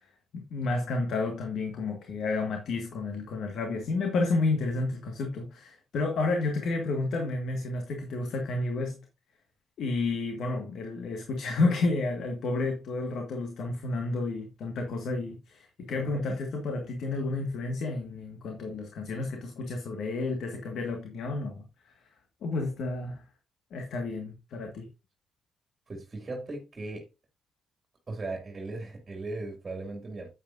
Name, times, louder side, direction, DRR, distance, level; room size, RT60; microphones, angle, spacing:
voice 1, 0.0-9.0 9.8-21.9 22.4-23.2 23.7-24.9, left 3 dB, 70° left, 1.7 m, -31 dB
voice 2, 16.0-16.4 25.9-27.1 28.1-30.3, right 2 dB, 30° right, 2.4 m, -38 dB
9.2 x 8.6 x 2.6 m
cardioid pair, 90°, 0 cm